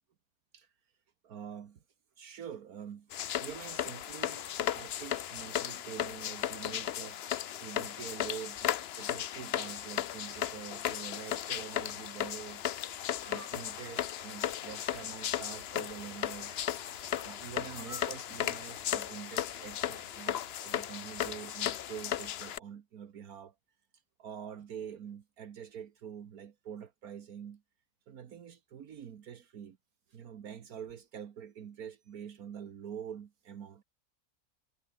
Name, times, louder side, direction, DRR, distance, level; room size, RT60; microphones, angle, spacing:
voice 1, 1.2-1.8 2.2-3.1 3.4-4.5 4.7-7.3 7.6-12.6 13.2-16.5 17.2-23.5 23.9-27.6 28.1-29.8 30.1-33.8, right 8 dB, 75° right, 1.7 m, -46 dB
sound 1, 3.1-22.6, left 10 dB, 55° left, 0.7 m, -36 dB
sound 2, 9.6-21.8, right 2 dB, 45° right, 6.2 m, -57 dB
omnidirectional pair, 1.6 m